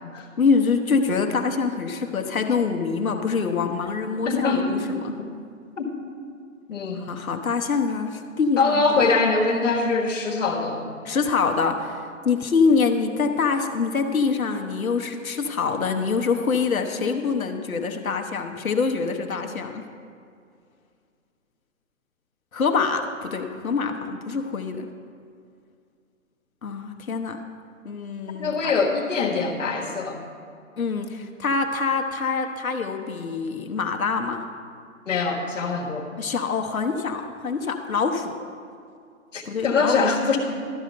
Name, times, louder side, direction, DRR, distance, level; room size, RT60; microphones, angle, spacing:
voice 1, 0.4-5.1 7.1-9.0 11.0-19.8 22.5-24.9 26.6-27.4 27.8-28.7 30.8-34.4 36.2-38.4 39.4-40.0, left 5 dB, 80° left, 5 dB, 1.0 m, -25 dB
voice 2, 4.2-4.7 5.2-5.3 5.8-5.9 6.7-7.0 8.6-10.9 28.4-30.2 35.1-36.1 39.3-40.4, left 4 dB, 60° left, 2 dB, 1.5 m, -23 dB
12.0 x 5.0 x 6.6 m, 2.3 s
figure-of-eight pair, 140°, 41 cm